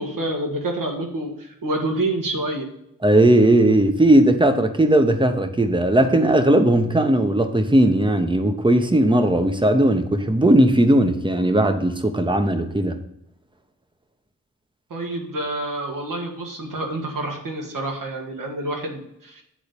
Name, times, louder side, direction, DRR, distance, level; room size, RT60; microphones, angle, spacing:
voice 1, 0.0-2.7 14.9-19.4, right 1 dB, 70° right, 2.1 m, -28 dB
voice 2, 3.0-13.0, right 1 dB, 15° right, 1.1 m, -17 dB
8.6 x 3.9 x 7.0 m
cardioid pair, 65°, 34 cm